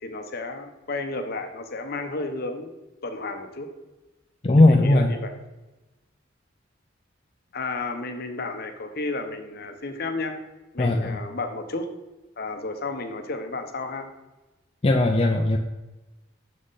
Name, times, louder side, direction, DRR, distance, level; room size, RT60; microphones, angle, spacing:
voice 1, 0.0-2.8 3.0-3.7 4.6-5.3 7.5-10.3 10.7-11.9 12.4-14.1, left 3 dB, 50° left, 6 dB, 0.8 m, -32 dB
voice 2, 4.4-5.1 10.8-11.2 14.8-15.6, left 2 dB, 30° left, 1 dB, 0.4 m, -18 dB
6.4 x 5.9 x 4.0 m, 1.1 s
head